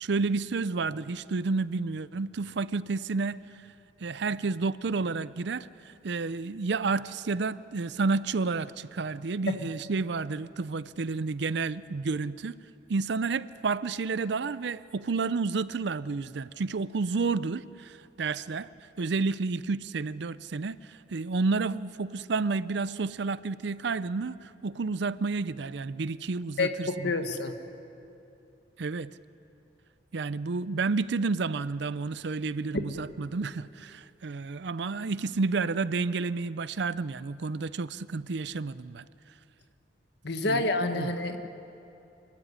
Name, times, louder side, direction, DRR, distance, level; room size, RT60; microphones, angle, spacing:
voice 1, 0.0-3.7 4.0-12.6 12.9-18.7 19.0-27.1 28.8-29.1 30.1-39.0 40.4-40.6 41.0-41.1, right 4 dB, 65° right, 17 dB, 0.5 m, -30 dB
voice 2, 26.6-27.5 40.2-41.5, left 2 dB, 65° left, 7 dB, 1.6 m, -28 dB
26.5 x 15.5 x 9.9 m, 2.7 s
head